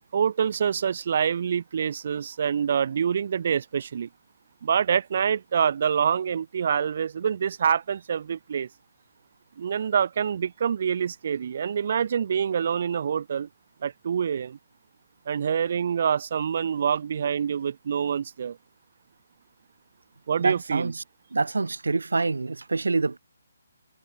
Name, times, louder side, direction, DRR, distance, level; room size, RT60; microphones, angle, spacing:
voice 1, 0.1-4.1 4.6-8.7 9.6-13.5 13.8-14.6 15.2-18.6 20.3-20.9, right 7 dB, 50° right, 1.6 m, -26 dB
voice 2, 20.4-21.0 21.3-23.2, right 3 dB, 90° right, 2.0 m, -26 dB
hypercardioid pair, 160°, 0 cm